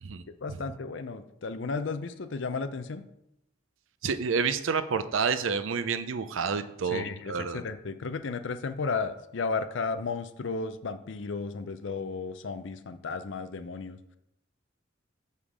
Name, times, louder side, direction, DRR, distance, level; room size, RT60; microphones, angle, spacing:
voice 1, 0.4-3.0 6.8-14.0, left 4 dB, 70° left, 11 dB, 0.5 m, -34 dB
voice 2, 4.0-7.6, right 5 dB, 85° right, 11 dB, 0.5 m, -29 dB
6.4 x 5.5 x 4.9 m, 0.85 s
head